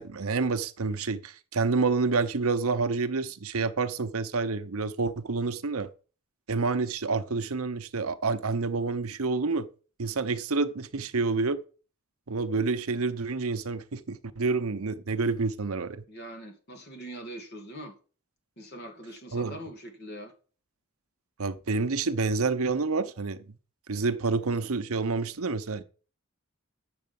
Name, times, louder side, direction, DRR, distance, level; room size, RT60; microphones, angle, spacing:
voice 1, 0.0-5.9 6.5-9.7 10.0-11.6 12.3-16.0 19.3-19.5 21.4-23.4 23.9-25.8, right 4 dB, 80° right, 0.8 m, -28 dB
voice 2, 16.1-17.9 18.6-20.3, right 1 dB, 50° left, 2.6 m, -42 dB
8.6 x 6.8 x 7.0 m
head